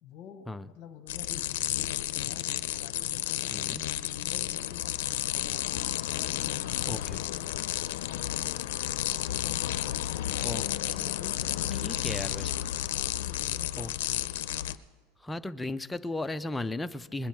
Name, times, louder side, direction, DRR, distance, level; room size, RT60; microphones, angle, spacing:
voice 1, 0.0-2.4 2.8-3.8 4.2-5.7 6.1-7.7 8.0-8.7 9.1-10.5 10.8-12.4 12.9-14.2, left 8 dB, 35° left, 7 dB, 1.1 m, -49 dB
sound 1, 1.1-14.7, left 13 dB, 85° left, 0.4 m, -32 dB
voice 2, 3.5-3.8 6.9-7.2 10.4-11.0 11.8-12.5 13.8-13.9 15.2-17.3, left 2 dB, 5° left, 10 dB, 0.3 m, -35 dB
21.0 x 10.0 x 4.5 m, 1.4 s
supercardioid pair, 165°, 0 cm